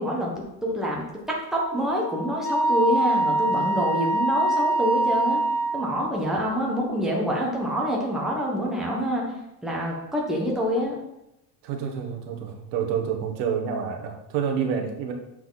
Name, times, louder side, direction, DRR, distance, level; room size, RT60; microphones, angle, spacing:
voice 1, 0.0-5.4 5.7-9.2 9.6-10.9, equal, ahead, -3 dB, 1.2 m, -26 dB
Wind instrument woodwind instrument, 1.5-5.8, right 2 dB, 20° left, 0.9 m, -24 dB
voice 2, 11.6-15.1, right 7 dB, 75° right, 3 dB, 1.5 m, -28 dB
7.7 x 4.6 x 4.0 m, 0.87 s
cardioid pair, 155°, 49 cm